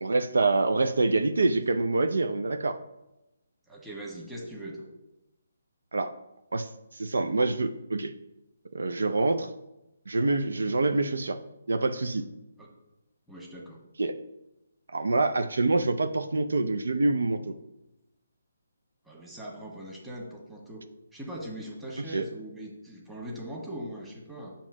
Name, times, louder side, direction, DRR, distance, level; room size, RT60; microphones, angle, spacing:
voice 1, 0.0-2.8 5.9-6.1 6.5-6.7 6.9-8.1 8.7-9.5 10.1-11.4 11.7-12.3 14.0-14.1 14.9-17.5 22.1-22.2, right 3 dB, 80° right, 9 dB, 0.5 m, -26 dB
voice 2, 3.7-4.9 12.6-12.7 13.3-13.8 19.0-20.8 21.1-24.5, right 1 dB, 5° right, -3 dB, 1.4 m, -40 dB
7.1 x 2.9 x 6.0 m, 0.94 s
hypercardioid pair, 150°, 0 cm